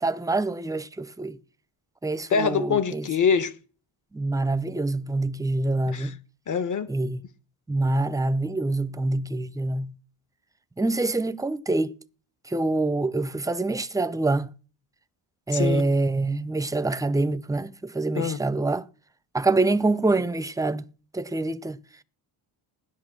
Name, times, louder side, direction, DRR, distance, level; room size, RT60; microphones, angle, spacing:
voice 1, 0.0-1.4 2.0-3.1 4.1-6.2 6.9-7.2 7.7-9.9 10.8-11.9 12.5-14.5 15.5-18.9 19.3-20.8 21.1-21.8, right 2 dB, 10° right, 0.6 m, -25 dB
voice 2, 2.3-3.5 5.9-6.1 6.5-6.9 15.5-15.8 18.2-18.4, left 6 dB, 40° left, 1.4 m, -24 dB
17.0 x 11.0 x 6.1 m
cardioid pair, 120°, 46 cm